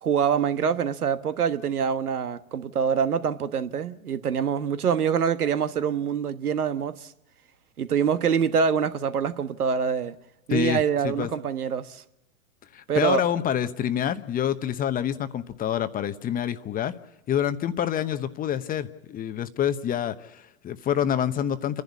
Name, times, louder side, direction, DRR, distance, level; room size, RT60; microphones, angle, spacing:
voice 1, 0.0-7.1 7.8-10.2 10.5-12.0 12.9-13.2, right 7 dB, 85° right, 1.4 m, -25 dB
voice 2, 10.5-11.3 12.7-16.9 17.3-21.8, left 9 dB, 20° left, 1.0 m, -27 dB
29.5 x 11.0 x 8.3 m
hypercardioid pair, 120°, 44 cm